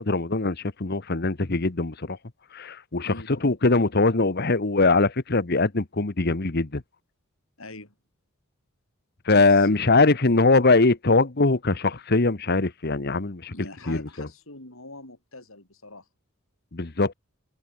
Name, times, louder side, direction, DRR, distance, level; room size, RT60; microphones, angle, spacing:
voice 1, 0.0-2.2 2.5-3.1 3.4-6.8 9.3-13.5 13.9-14.3 16.7-17.1, left 3 dB, 50° left, 1.2 m, -22 dB
voice 2, 3.0-3.3 7.6-7.9 9.3-10.4 13.5-16.1, left 2 dB, 70° left, 7.4 m, -43 dB
head